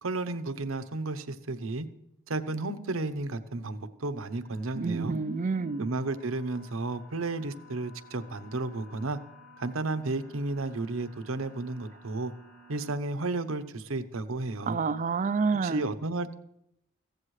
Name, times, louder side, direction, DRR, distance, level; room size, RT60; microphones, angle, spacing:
voice 1, 0.0-1.9 2.3-5.2 5.8-9.2 9.6-12.3 12.7-14.8 15.6-16.3, right 2 dB, 90° right, 11 dB, 0.9 m, -33 dB
sound 1, 4.2-12.9, left 1 dB, 70° left, 5.9 m, -55 dB
voice 2, 4.8-5.9 14.7-15.9, right 4 dB, 40° right, 13 dB, 0.4 m, -28 dB
16.0 x 15.0 x 3.2 m, 0.77 s
head